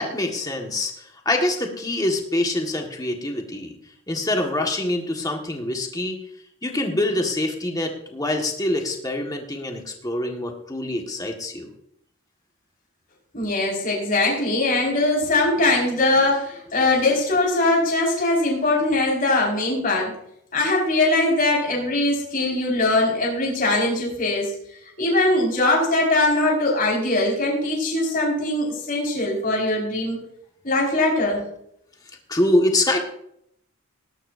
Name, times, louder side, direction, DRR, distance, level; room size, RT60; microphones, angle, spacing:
voice 1, 0.0-3.7 4.1-6.2 6.6-11.7 32.3-33.0, left 1 dB, 15° left, 2 dB, 1.6 m, -25 dB
voice 2, 13.3-20.1 20.5-24.5 25.0-30.2 30.6-31.4, left 2 dB, 40° left, -2 dB, 5.1 m, -21 dB
19.0 x 12.5 x 2.7 m, 0.73 s
head